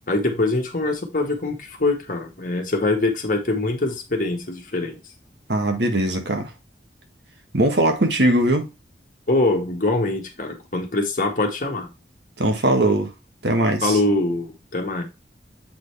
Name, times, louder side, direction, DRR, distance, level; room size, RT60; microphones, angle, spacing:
voice 1, 0.1-5.0 9.3-11.9 13.8-15.0, left 2 dB, 50° left, 1.6 m, -23 dB
voice 2, 5.5-6.5 7.5-8.7 12.4-13.1 13.4-14.0, right 1 dB, 70° right, 1.5 m, -20 dB
7.8 x 4.0 x 3.3 m
head